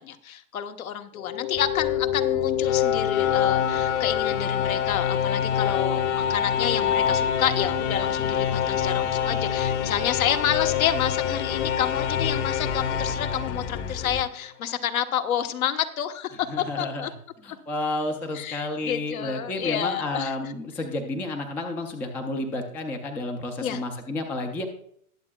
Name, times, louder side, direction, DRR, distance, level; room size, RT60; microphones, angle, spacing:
voice 1, 0.0-17.1 17.5-17.6 18.3-20.5 23.6-23.8, left 9 dB, 70° left, 8 dB, 1.2 m, -29 dB
sound 1, 1.2-14.2, left 9 dB, 55° left, 1.5 m, -26 dB
sound 2, 1.5-14.2, left 8 dB, 25° left, 0.8 m, -38 dB
voice 2, 16.5-17.1 17.4-24.7, left 2 dB, 5° left, 4 dB, 0.4 m, -31 dB
20.5 x 7.2 x 2.3 m, 0.66 s
hypercardioid pair, 130°, 43 cm